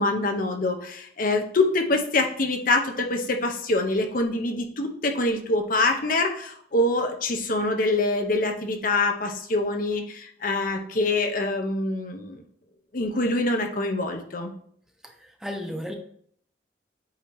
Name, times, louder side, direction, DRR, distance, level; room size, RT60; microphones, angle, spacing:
voice 1, 0.0-12.4 12.9-14.5, left 2 dB, 50° left, 4 dB, 0.9 m, -25 dB
voice 2, 15.0-16.0, left 1 dB, 5° right, 3 dB, 0.7 m, -34 dB
8.8 x 2.9 x 4.7 m, 0.63 s
head